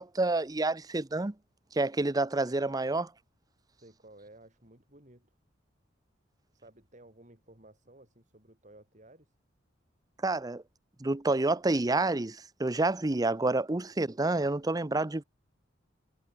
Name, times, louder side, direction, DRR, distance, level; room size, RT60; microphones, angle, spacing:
voice 1, 0.0-1.3 1.7-3.1 10.2-10.6 11.0-15.2, right 2 dB, 20° right, 0.7 m, -28 dB
voice 2, 3.7-5.3 6.5-9.3, right 1 dB, 40° right, 7.8 m, -56 dB
head